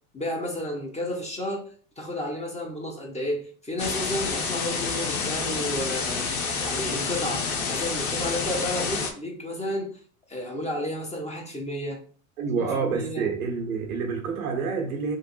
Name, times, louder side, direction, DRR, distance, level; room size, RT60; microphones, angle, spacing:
voice 1, 0.1-1.7 2.0-6.3 6.6-10.0 10.3-12.0 12.6-13.3, left 1 dB, 15° left, 1.5 m, -32 dB
sound 1, 3.8-9.1, left 5 dB, 90° left, 1.0 m, -28 dB
voice 2, 12.4-15.1, right 5 dB, 85° right, 1.6 m, -28 dB
3.7 x 2.6 x 4.5 m
hypercardioid pair, 90°, 42 cm